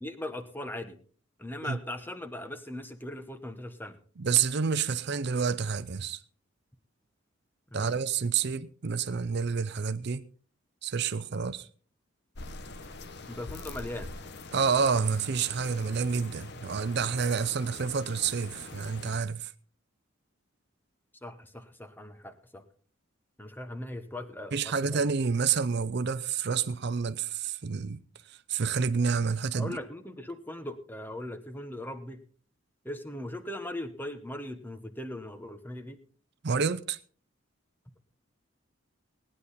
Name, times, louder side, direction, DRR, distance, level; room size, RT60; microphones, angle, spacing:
voice 1, 0.0-1.0 1.4-4.0 7.7-8.0 13.3-14.1 21.2-22.6 23.4-25.1 29.5-32.2 32.8-36.0, left 1 dB, 10° left, 1.0 m, -39 dB
voice 2, 4.2-6.2 7.7-10.2 10.8-11.7 14.5-19.5 24.5-28.0 28.3-29.8 36.4-37.0, right 6 dB, 55° right, 0.5 m, -29 dB
sound 1, 12.3-19.2, left 3 dB, 55° left, 1.0 m, -44 dB
18.0 x 9.9 x 4.1 m
head